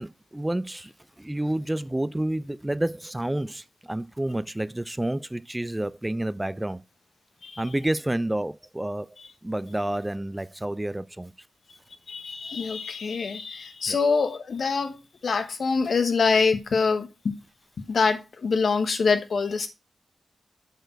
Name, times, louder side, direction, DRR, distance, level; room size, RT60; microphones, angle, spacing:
voice 1, 0.0-6.8 7.6-9.1 9.4-11.3 13.9-14.0, right 1 dB, 15° right, 0.4 m, -29 dB
voice 2, 12.1-17.3 17.9-19.7, left 4 dB, 70° left, 1.1 m, -25 dB
7.9 x 4.5 x 4.4 m
cardioid pair, 60°, 0 cm